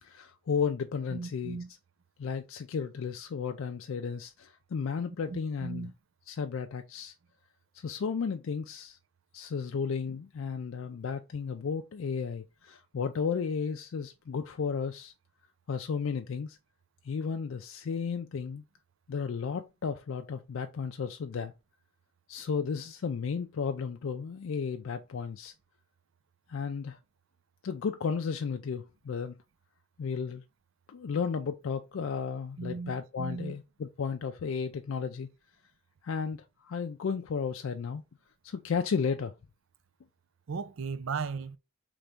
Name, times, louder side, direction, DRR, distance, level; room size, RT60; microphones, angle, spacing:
voice 1, 0.0-1.6 2.2-5.9 6.3-7.1 7.7-9.0 9.3-15.1 15.7-16.6 17.0-18.6 19.1-21.5 22.3-25.5 26.5-27.0 27.6-29.4 30.0-30.4 30.9-35.3 36.0-38.0 38.4-39.3, left 6 dB, 65° left, 0.4 m, -33 dB
voice 2, 1.1-1.7 5.1-5.9 32.6-33.6 40.5-41.6, right 5 dB, 70° right, 0.5 m, -37 dB
4.0 x 3.4 x 3.4 m
head